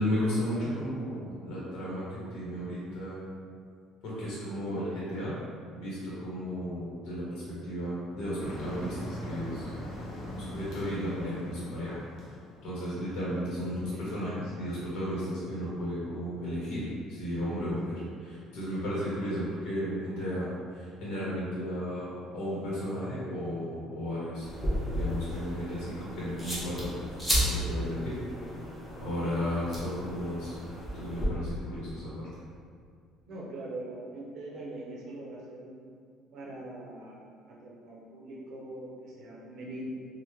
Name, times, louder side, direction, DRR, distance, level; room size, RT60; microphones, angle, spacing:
voice 1, 0.0-3.2 4.0-5.3 5.7-9.7 10.3-12.0 12.6-16.8 17.1-24.5 24.9-26.9 27.5-28.2 29.0-30.6 30.9-32.3, equal, 70° left, -8 dB, 0.9 m, -34 dB
Motor vehicle (road), 8.4-13.3, equal, 45° left, 0.6 m, -41 dB
sound 1, 24.4-31.3, equal, 5° left, 0.6 m, -34 dB
voice 2, 28.1-28.6 33.2-35.9 36.3-39.9, right 1 dB, 50° right, -4 dB, 0.6 m, -43 dB
3.0 x 2.1 x 3.4 m, 2.2 s
cardioid pair, 165°, 0 cm